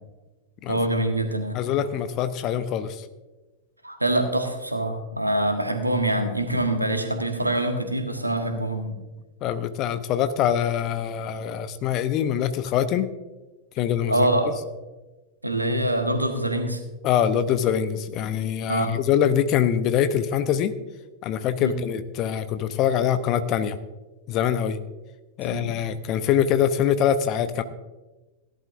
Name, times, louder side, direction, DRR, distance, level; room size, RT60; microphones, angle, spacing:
voice 1, 0.7-1.6 3.8-9.0 14.1-14.5 15.4-16.8 18.7-19.0 21.6-21.7 25.4-25.7, right 1 dB, 85° right, 6 dB, 1.4 m, -25 dB
voice 2, 1.5-3.0 9.4-13.1 13.8-14.3 17.0-20.7 21.2-23.8 24.3-24.8 25.4-27.6, left 9 dB, 40° left, 11 dB, 0.8 m, -24 dB
17.0 x 11.5 x 2.6 m, 1.2 s
figure-of-eight pair, 90°, 0 cm